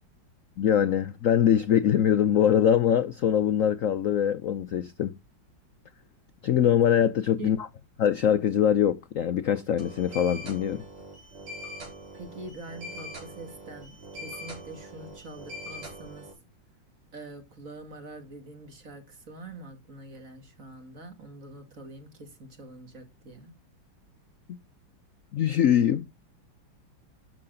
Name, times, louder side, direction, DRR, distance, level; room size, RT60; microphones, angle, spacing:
voice 1, 0.6-5.1 6.4-7.6 8.0-10.8 25.3-26.0, left 9 dB, 70° left, 0.7 m, -23 dB
sound 1, 9.8-16.3, equal, 85° right, 5.5 m, -42 dB
voice 2, 12.1-16.3 17.1-23.5, right 2 dB, 40° right, 2.5 m, -44 dB
12.0 x 7.7 x 3.9 m
omnidirectional pair, 2.2 m